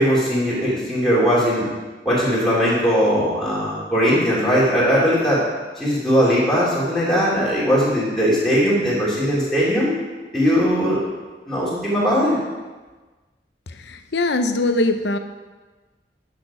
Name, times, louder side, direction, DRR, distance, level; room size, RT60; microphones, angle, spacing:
voice 1, 0.0-1.7 2.0-5.4 5.8-9.9 10.3-11.0 11.5-12.4, equal, ahead, -9 dB, 2.8 m, -19 dB
voice 2, 13.8-15.2, left 2 dB, 80° left, 8 dB, 0.7 m, -21 dB
10.5 x 6.7 x 5.0 m, 1.3 s
head